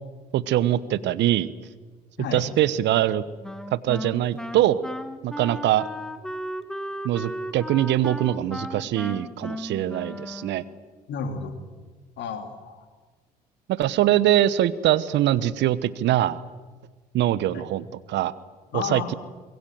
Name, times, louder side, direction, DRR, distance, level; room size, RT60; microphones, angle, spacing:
voice 1, 0.3-1.5 2.3-3.2 3.7-4.8 5.2-5.9 7.0-10.6 13.7-16.4 17.1-18.3 18.7-19.1, right 13 dB, 60° right, 17 dB, 1.1 m, -23 dB
voice 2, 2.2-2.5 11.1-11.5 12.2-12.9 17.5-17.6 18.7-19.2, left 6 dB, 60° left, 6 dB, 3.2 m, -32 dB
Wind instrument woodwind instrument, 3.4-10.8, equal, 5° left, 1.6 m, -35 dB
24.5 x 22.0 x 7.7 m, 1.4 s
hypercardioid pair, 55°, 21 cm